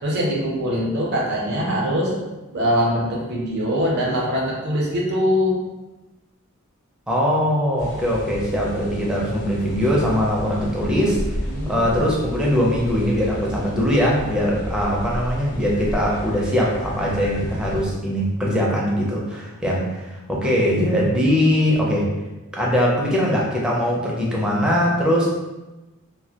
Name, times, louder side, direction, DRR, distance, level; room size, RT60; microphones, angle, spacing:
voice 1, 0.0-2.1 2.5-5.6 11.4-11.8, equal, 50° right, -3 dB, 0.6 m, -22 dB
voice 2, 7.1-11.2 11.7-22.1 22.5-25.3, equal, 5° right, -5 dB, 0.4 m, -21 dB
sound 1, 7.8-17.9, equal, 75° left, 0.6 m, -33 dB
2.1 x 2.1 x 2.7 m, 1.1 s
head